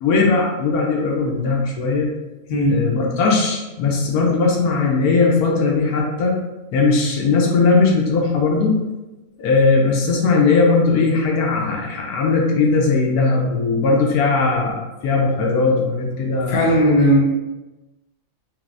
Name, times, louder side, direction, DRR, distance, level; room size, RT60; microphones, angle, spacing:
voice 1, 0.0-2.1 2.7-6.4 6.7-8.8 9.4-16.6, left 4 dB, 80° left, -1 dB, 1.1 m, -18 dB
voice 2, 16.5-17.2, equal, 55° left, -2 dB, 0.8 m, -16 dB
3.3 x 2.7 x 2.5 m, 1.1 s
omnidirectional pair, 1.6 m